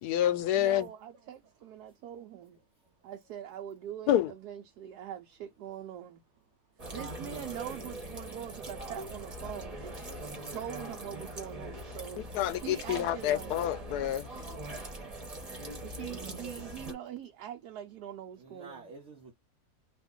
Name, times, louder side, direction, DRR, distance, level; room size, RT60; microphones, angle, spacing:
voice 1, 0.0-0.9 4.1-4.3 12.3-14.3, left 12 dB, 85° left, 1.1 m, -28 dB
voice 2, 0.5-2.6 3.0-6.2 6.9-12.3 12.6-13.6 15.8-18.9, right 10 dB, 85° right, 1.2 m, -43 dB
sound 1, 6.8-16.9, right 1 dB, 25° right, 1.1 m, -42 dB
voice 3, 14.5-14.9 18.4-19.3, right 3 dB, 60° right, 0.9 m, -50 dB
2.8 x 2.5 x 3.6 m
omnidirectional pair, 1.6 m